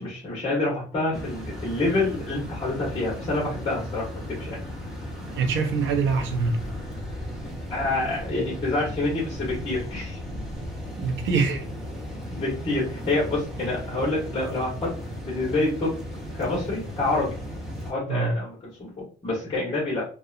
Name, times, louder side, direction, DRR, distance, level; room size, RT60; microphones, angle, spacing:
voice 1, 0.0-4.6 7.7-10.2 12.3-14.9 15.2-15.9 16.4-17.3 17.8-20.1, left 2 dB, 25° left, 1.0 m, -27 dB
sound 1, 1.1-17.9, equal, ahead, 0.5 m, -36 dB
voice 2, 5.4-6.6 11.0-11.7 18.1-18.3, right 4 dB, 85° right, 0.5 m, -24 dB
2.7 x 2.1 x 2.3 m
cardioid pair, 165°, 20 cm